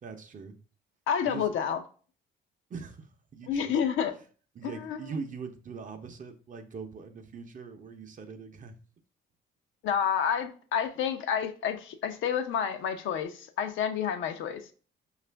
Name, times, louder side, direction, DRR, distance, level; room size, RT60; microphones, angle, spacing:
voice 1, 0.0-0.5 1.3-1.5 2.7-3.8 4.5-8.8, right 5 dB, 40° right, 0.6 m, -42 dB
voice 2, 1.1-1.8 3.5-4.1 4.6-5.0 9.8-14.6, left 8 dB, 75° left, 0.6 m, -29 dB
4.9 x 2.4 x 3.3 m
cardioid pair, 90°, 20 cm